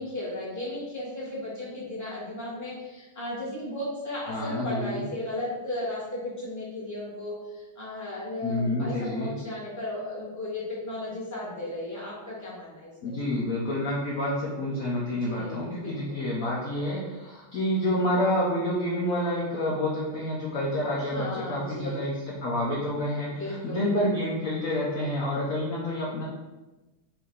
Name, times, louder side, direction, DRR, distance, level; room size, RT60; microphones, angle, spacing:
voice 1, 0.0-13.2 15.3-16.0 21.0-22.0 23.3-23.9, left 1 dB, 10° left, -7 dB, 0.9 m, -35 dB
voice 2, 4.3-5.0 8.4-9.3 13.0-26.2, left 1 dB, 70° left, -5 dB, 0.8 m, -28 dB
4.6 x 2.7 x 3.9 m, 1.1 s
omnidirectional pair, 2.4 m